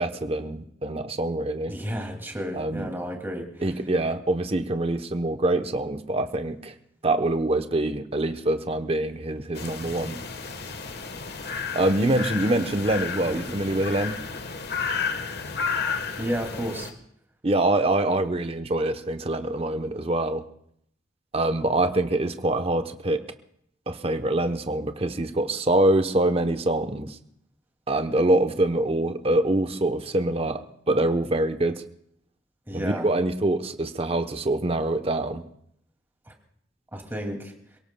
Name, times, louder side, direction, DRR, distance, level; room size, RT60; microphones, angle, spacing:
voice 1, 0.0-1.7 2.5-2.9 3.6-6.7 7.0-10.2 11.7-14.2 17.4-20.4 21.3-23.3 23.9-27.2 27.9-31.8 32.7-35.4, right 1 dB, 35° right, 8 dB, 0.9 m, -25 dB
voice 2, 1.7-3.6 13.3-13.5 16.2-16.9 32.7-33.1 36.3-36.4 36.9-37.5, equal, 15° right, 2 dB, 2.4 m, -32 dB
sound 1, 9.6-16.9, left 5 dB, 65° left, 1.2 m, -32 dB
28.0 x 17.5 x 2.2 m, 0.70 s
head